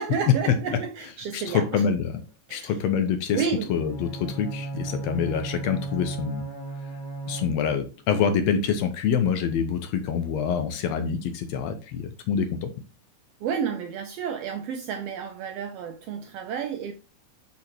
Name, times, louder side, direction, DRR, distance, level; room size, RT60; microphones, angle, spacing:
voice 1, 0.0-1.8 2.5-2.8 3.3-3.7 13.4-16.9, right 7 dB, 75° right, 1.5 m, -31 dB
voice 2, 1.3-2.2 2.5-3.4 3.7-6.4 7.3-12.7, left 7 dB, 75° left, 1.8 m, -26 dB
Bowed string instrument, 3.7-7.9, right 3 dB, 25° left, 1.3 m, -35 dB
6.2 x 5.3 x 2.9 m
omnidirectional pair, 3.3 m